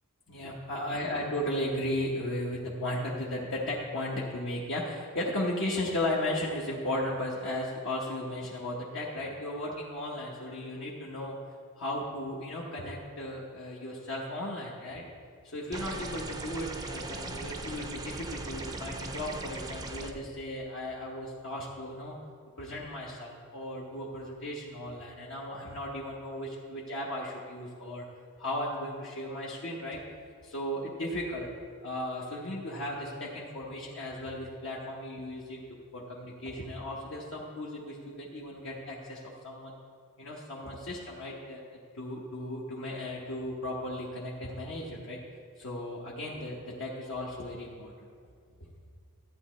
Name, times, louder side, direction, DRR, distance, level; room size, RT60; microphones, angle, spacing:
voice 1, 0.3-11.4 11.8-15.0 15.4-22.2 22.6-28.0 28.4-30.0 30.4-31.5 31.8-35.7 35.9-39.7 40.2-41.6 41.9-45.2 45.6-47.9, left 1 dB, 60° left, -5 dB, 1.1 m, -35 dB
sound 1, 15.7-20.1, right 2 dB, 15° right, 0.5 m, -39 dB
12.5 x 9.0 x 3.1 m, 2.1 s
head